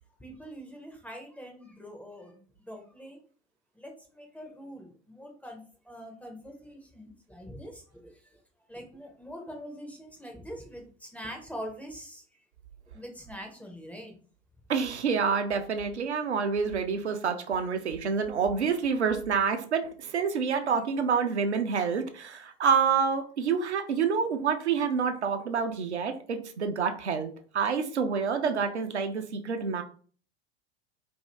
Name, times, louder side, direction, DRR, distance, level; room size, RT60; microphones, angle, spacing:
voice 1, 0.2-3.2 3.7-8.4 8.7-12.2 12.9-14.2, equal, 5° left, 2 dB, 0.4 m, -44 dB
voice 2, 14.7-29.8, right 6 dB, 80° right, 6 dB, 0.5 m, -28 dB
2.6 x 2.4 x 3.1 m, 0.43 s
figure-of-eight pair, 85°, 33 cm